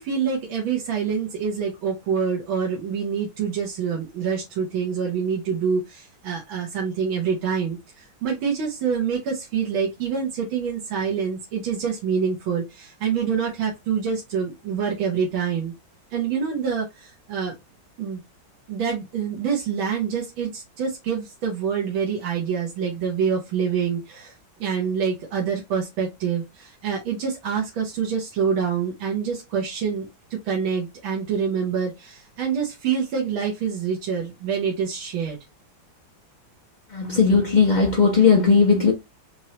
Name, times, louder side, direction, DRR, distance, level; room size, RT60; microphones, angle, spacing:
voice 1, 0.0-15.7 16.1-17.5 18.0-18.2 18.7-24.3 24.6-30.1 30.3-35.4, right 6 dB, 90° right, 1.8 m, -26 dB
voice 2, 36.9-38.9, left 5 dB, 65° left, 0.4 m, -17 dB
4.4 x 3.1 x 2.7 m
omnidirectional pair, 2.1 m